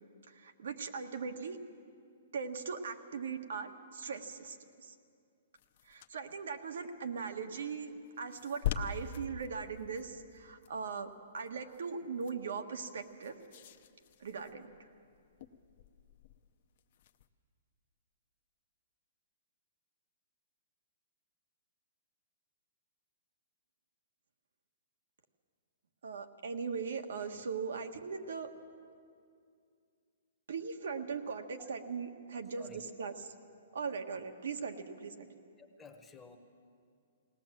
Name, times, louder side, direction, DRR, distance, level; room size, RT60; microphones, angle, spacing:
voice 1, 0.3-1.6 2.3-4.9 5.8-13.3 14.2-14.7 26.0-28.5 30.5-32.7 33.0-33.1 33.7-35.3, right 5 dB, 75° right, 6 dB, 1.5 m, -39 dB
sound 1, 5.5-17.3, left 9 dB, 40° left, 0.7 m, -45 dB
voice 2, 32.3-32.8 33.7-33.8 35.6-36.4, left 4 dB, 5° left, 3 dB, 1.0 m, -54 dB
20.0 x 18.5 x 7.5 m, 2.3 s
hypercardioid pair, 175°, 0 cm